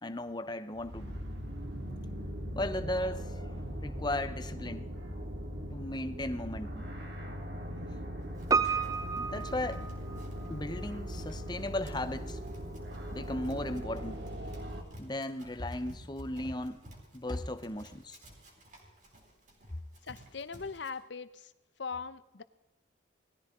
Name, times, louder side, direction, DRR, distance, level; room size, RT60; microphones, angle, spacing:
voice 1, 0.0-1.1 2.6-3.3 3.8-4.9 5.7-6.8 9.2-9.8 10.5-12.4 13.1-14.2 15.0-16.8 17.1-18.2, left 1 dB, 20° left, 9 dB, 0.8 m, -36 dB
sound 1, 0.8-14.8, equal, 60° right, 2.4 m, -40 dB
Run, 8.4-20.9, equal, 40° right, 4.1 m, -55 dB
Piano, 8.5-10.6 10.8-10.9, right 5 dB, 20° right, 0.5 m, -31 dB
voice 2, 20.1-21.5 21.8-22.4, left 5 dB, 65° left, 14 dB, 0.8 m, -40 dB
19.5 x 14.5 x 3.8 m, 0.95 s
head